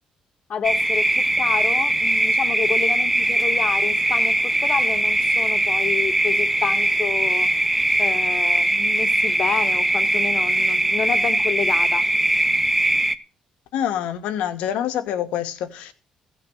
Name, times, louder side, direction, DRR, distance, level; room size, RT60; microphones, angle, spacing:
voice 1, 0.5-7.5 8.0-12.0, left 7 dB, 55° left, 1.4 m, -29 dB
sound 1, 0.6-13.2, right 1 dB, 15° right, 1.1 m, -20 dB
voice 2, 13.7-15.9, left 10 dB, 85° left, 1.4 m, -26 dB
15.5 x 6.9 x 6.3 m
cardioid pair, 80°, 2 cm